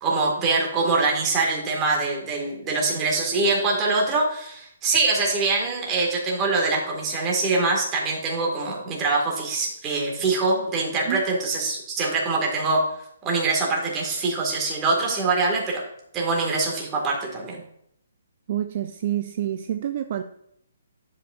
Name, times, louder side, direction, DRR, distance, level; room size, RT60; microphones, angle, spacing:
voice 1, 0.0-12.8 13.3-15.8 16.1-17.6, right 3 dB, 20° right, -2 dB, 1.7 m, -24 dB
voice 2, 18.5-20.2, right 11 dB, 45° right, 8 dB, 0.3 m, -27 dB
10.5 x 5.0 x 2.4 m, 0.73 s
hypercardioid pair, 160°, 0 cm